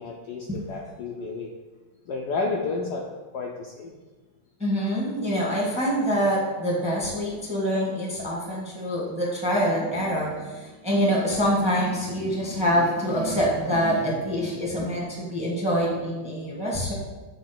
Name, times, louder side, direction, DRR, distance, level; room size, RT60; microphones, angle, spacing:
voice 1, 0.0-1.5 2.1-3.0 3.3-3.9, left 3 dB, 70° left, -1 dB, 1.0 m, -31 dB
voice 2, 4.6-16.9, equal, 5° right, -3 dB, 1.1 m, -25 dB
7.1 x 3.0 x 5.8 m, 1.2 s
omnidirectional pair, 2.3 m